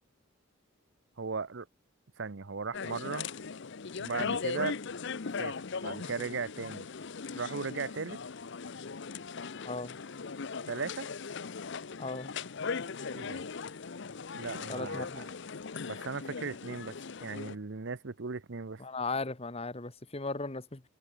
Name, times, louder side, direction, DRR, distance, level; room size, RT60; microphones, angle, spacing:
voice 1, 1.2-1.7 2.2-3.3 4.0-4.8 5.4-5.5 5.8-6.9 7.3-8.2 10.7-11.1 13.1-13.4 14.3-15.3 15.9-18.8, right 4 dB, 60° right, 0.8 m, -37 dB
sound 1, 2.7-17.6, left 5 dB, 55° left, 0.7 m, -39 dB
voice 2, 12.0-12.3 14.7-15.3 18.8-20.8, left 3 dB, 30° left, 1.3 m, -37 dB
head